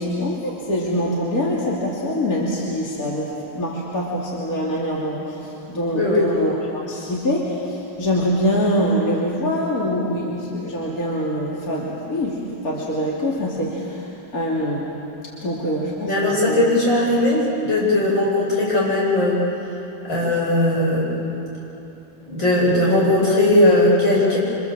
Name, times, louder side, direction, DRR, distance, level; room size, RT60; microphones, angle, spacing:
voice 1, 0.0-14.1 14.3-14.8 15.4-16.7, equal, 45° left, -5 dB, 3.2 m, -24 dB
voice 2, 5.9-6.3 16.0-19.4 20.0-21.2 22.3-24.4, left 1 dB, 75° left, -5 dB, 8.4 m, -18 dB
27.0 x 25.5 x 7.5 m, 2.9 s
omnidirectional pair, 2.1 m